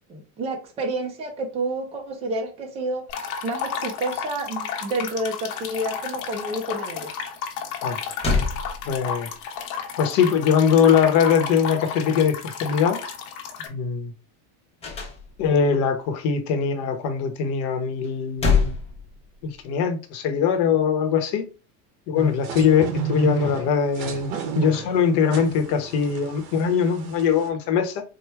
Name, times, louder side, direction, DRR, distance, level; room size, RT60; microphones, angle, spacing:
voice 1, 0.1-3.0 3.4-7.1, right 2 dB, 15° right, 0.3 m, -29 dB
sound 1, 3.1-13.7, left 6 dB, 85° left, 1.1 m, -32 dB
sound 2, 7.8-7.9 8.2-9.3 14.8-15.7 18.0-19.6, left 5 dB, 15° left, 0.7 m, -25 dB
voice 2, 8.8-9.3 10.0-13.0 13.7-14.1 15.4-18.7 19.4-21.4 22.1-28.0, left 7 dB, 50° left, 0.9 m, -21 dB
sound 3, 22.2-27.5, right 6 dB, 65° right, 1.1 m, -32 dB
4.5 x 2.1 x 3.3 m
cardioid pair, 170°, 46 cm